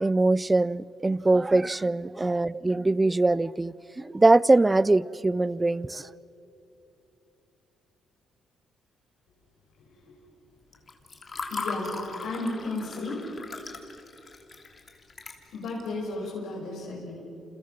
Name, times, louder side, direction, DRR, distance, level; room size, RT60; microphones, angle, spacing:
voice 1, 0.0-6.1, right 2 dB, 20° right, 0.5 m, -22 dB
Water / Fill (with liquid), 10.7-15.9, left 3 dB, 35° left, 3.1 m, -38 dB
voice 2, 11.5-13.3 15.5-17.2, left 2 dB, 80° left, 5.9 m, -34 dB
29.5 x 28.5 x 6.0 m
cardioid pair, 90°, 0 cm